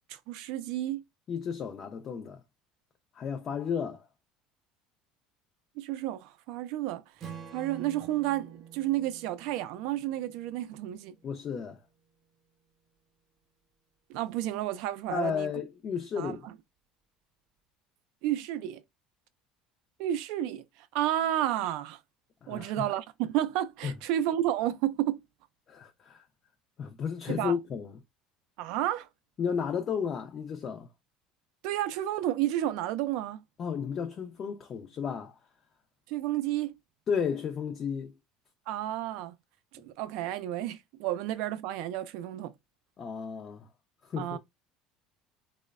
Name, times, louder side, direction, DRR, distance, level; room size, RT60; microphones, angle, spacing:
voice 1, 0.1-1.0 5.8-7.0 7.5-11.2 14.1-15.5 16.2-16.4 18.2-18.8 20.0-22.0 22.5-25.2 27.3-27.5 28.6-29.1 31.6-33.4 36.1-36.7 38.7-39.3 39.7-42.5 44.2-44.4, right 13 dB, 70° right, 0.3 m, -31 dB
voice 2, 1.3-2.4 3.1-4.1 11.2-11.8 15.1-16.5 22.4-22.9 23.8-23.9 25.7-26.3 26.8-27.9 29.4-30.9 33.6-35.4 37.1-38.1 43.0-43.7 44.1-44.4, left 7 dB, 35° left, 0.4 m, -33 dB
Strum, 7.2-11.5, right 8 dB, 35° right, 0.7 m, -48 dB
3.0 x 2.1 x 2.3 m
cardioid pair, 135°, 0 cm